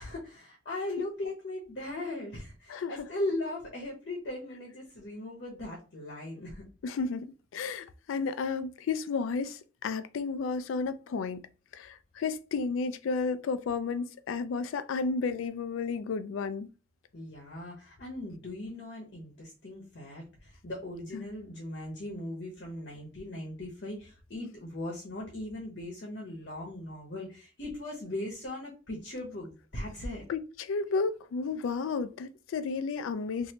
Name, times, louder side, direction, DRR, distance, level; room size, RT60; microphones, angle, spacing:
voice 1, 0.0-6.6 17.1-30.2, left 1 dB, 55° left, 0.9 m, -38 dB
voice 2, 6.8-7.3 7.5-11.4 11.7-16.7 21.1-21.3 30.3-33.5, left 4 dB, 80° left, 0.3 m, -32 dB
3.1 x 2.6 x 2.8 m
head